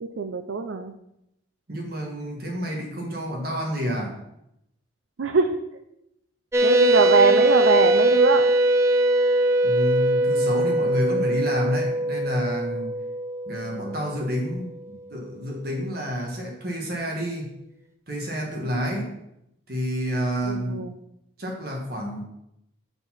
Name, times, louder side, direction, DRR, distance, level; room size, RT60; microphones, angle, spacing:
voice 1, 0.0-0.9 5.2-5.6 6.6-8.5 20.4-20.9, right 4 dB, 80° right, 6 dB, 0.5 m, -22 dB
voice 2, 1.7-4.2 9.6-12.9 13.4-17.5 18.1-19.1 19.7-20.8 21.4-22.2, equal, 50° right, 0 dB, 1.5 m, -29 dB
sound 1, 6.5-14.6, right 1 dB, 15° right, 0.4 m, -21 dB
6.7 x 4.6 x 5.7 m, 0.81 s
head